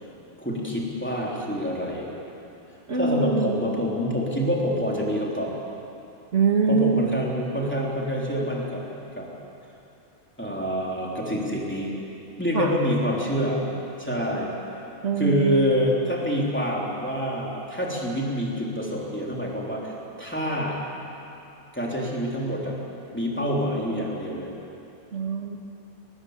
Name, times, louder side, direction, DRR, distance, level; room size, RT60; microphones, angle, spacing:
voice 1, 0.4-2.1 3.0-5.5 6.7-8.8 9.2-9.3 10.4-11.9 12.4-13.6 14.0-14.5 15.2-20.8 21.7-22.8 23.1-24.5, equal, 10° left, -4 dB, 3.8 m, -26 dB
voice 2, 2.9-3.7 6.3-7.1 12.5-12.8 15.0-15.8 25.1-25.6, right 4 dB, 65° right, 1 dB, 2.0 m, -23 dB
21.5 x 20.5 x 8.3 m, 2.9 s
omnidirectional pair, 1.4 m